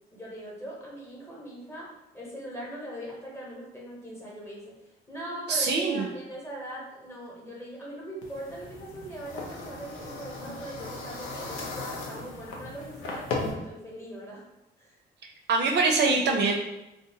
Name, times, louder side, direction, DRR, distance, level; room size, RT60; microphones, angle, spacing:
voice 1, 0.1-1.9 2.1-4.7 5.1-14.4 14.8-15.0, right 1 dB, 15° left, -5 dB, 0.9 m, -40 dB
voice 2, 5.5-6.1 15.2-16.6, right 4 dB, 60° right, 1 dB, 0.4 m, -24 dB
sound 1, 8.2-13.5, left 3 dB, 85° left, 0.6 m, -37 dB
2.6 x 2.2 x 2.6 m, 0.93 s
cardioid pair, 90°, 20 cm